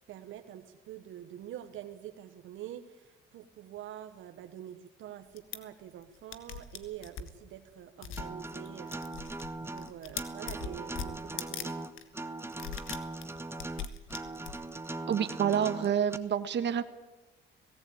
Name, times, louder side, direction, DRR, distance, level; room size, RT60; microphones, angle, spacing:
voice 1, 0.1-11.8, right 11 dB, 80° right, 7 dB, 1.2 m, -46 dB
sound 1, 5.4-5.6 6.0-6.1 6.3-7.3 8.0-8.3 8.6-9.5 9.7-11.7 12.0-12.1 12.5-14.8, left 8 dB, 85° left, 1.5 m, -40 dB
Acoustic guitar, 8.2-16.2, right 2 dB, 10° right, 1.1 m, -40 dB
voice 2, 15.1-16.8, right 8 dB, 65° right, 9 dB, 1.4 m, -28 dB
18.0 x 16.5 x 8.7 m, 1.2 s
cardioid pair, 90°, 20 cm